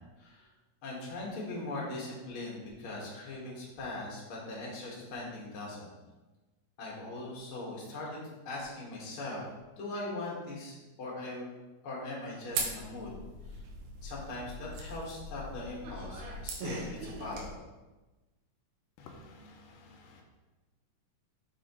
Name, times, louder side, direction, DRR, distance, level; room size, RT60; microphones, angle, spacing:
voice 1, 0.8-5.9 6.8-8.2 8.5-9.4 9.8-11.5 11.8-13.1 14.0-17.6, left 2 dB, 50° left, -4 dB, 2.1 m, -40 dB
sound 1, 12.5-17.5, right 2 dB, 75° right, 2.4 m, -40 dB
voice 2, 19.0-20.2, left 3 dB, 85° left, 2 dB, 2.3 m, -53 dB
6.4 x 6.1 x 3.0 m, 1.1 s
omnidirectional pair, 3.8 m